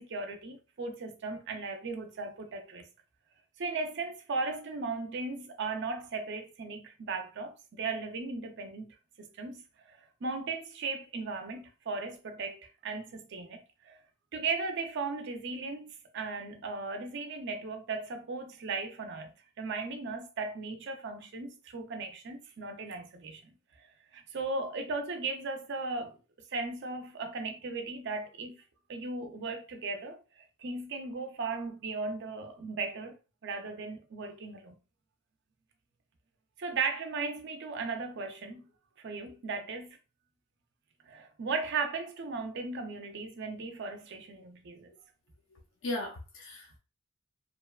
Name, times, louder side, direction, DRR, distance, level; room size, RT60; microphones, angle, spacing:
voice 1, 0.0-2.9 3.6-9.6 9.9-14.0 14.3-23.5 24.1-26.1 26.5-28.6 28.9-33.2 33.4-34.7 36.6-38.6 39.0-40.0 41.0-44.9, right 4 dB, 50° right, 0.4 m, -37 dB
voice 2, 45.5-46.8, left 1 dB, 60° left, 0.5 m, -38 dB
2.9 x 2.2 x 2.2 m
head